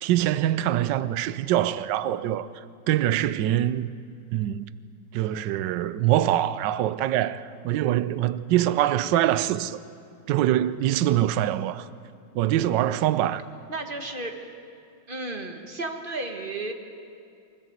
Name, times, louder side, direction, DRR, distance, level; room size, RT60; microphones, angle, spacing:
voice 1, 0.0-3.9 4.3-4.7 5.1-9.8 10.3-11.9 12.3-13.4, right 12 dB, 70° right, 1.2 m, -24 dB
voice 2, 13.7-14.3 15.1-16.7, right 2 dB, 30° right, 1.5 m, -33 dB
24.5 x 14.5 x 8.0 m
omnidirectional pair, 2.2 m